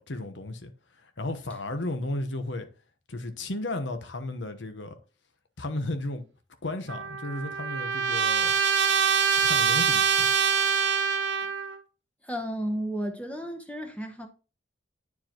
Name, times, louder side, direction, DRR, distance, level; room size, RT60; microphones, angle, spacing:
voice 1, 0.0-2.7 3.1-5.0 5.6-6.2 6.6-8.5 9.4-10.3, left 2 dB, 85° left, 1.0 m, -34 dB
Trumpet, 6.9-11.8, right 7 dB, 70° right, 0.8 m, -24 dB
voice 2, 12.2-14.3, equal, 10° left, 0.8 m, -33 dB
9.6 x 4.7 x 2.9 m
head